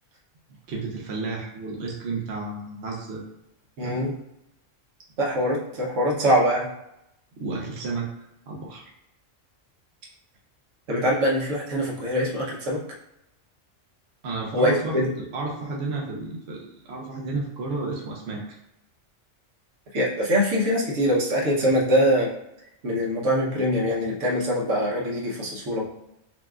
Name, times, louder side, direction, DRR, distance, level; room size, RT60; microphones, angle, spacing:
voice 1, 0.7-3.2 3.8-4.0 7.4-8.1 8.5-8.9 14.2-18.4, right 3 dB, 60° right, -2 dB, 0.9 m, -32 dB
voice 2, 3.8-4.1 5.2-6.7 10.9-12.8 14.5-15.1 19.9-22.3 22.8-25.9, equal, 75° right, -4 dB, 1.3 m, -23 dB
5.6 x 2.4 x 2.4 m, 0.84 s
omnidirectional pair, 1.3 m